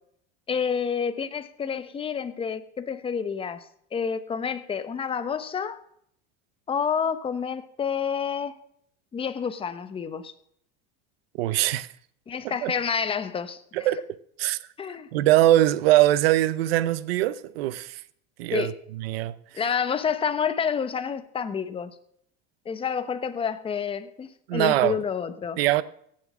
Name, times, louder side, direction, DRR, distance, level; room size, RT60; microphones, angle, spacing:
voice 1, 0.5-3.6 3.9-5.8 6.7-8.5 9.1-10.3 12.3-13.6 14.8-15.1 18.5-18.7 19.6-21.9 22.7-25.6, left 7 dB, 20° left, 0.9 m, -29 dB
voice 2, 11.4-11.9 12.6-12.7 13.7-14.0 14.4-14.6 15.1-18.0 18.4-19.4 24.5-25.0 25.6-25.8, right 15 dB, 90° right, 0.8 m, -22 dB
16.5 x 7.5 x 6.2 m
supercardioid pair, 130°, 29 cm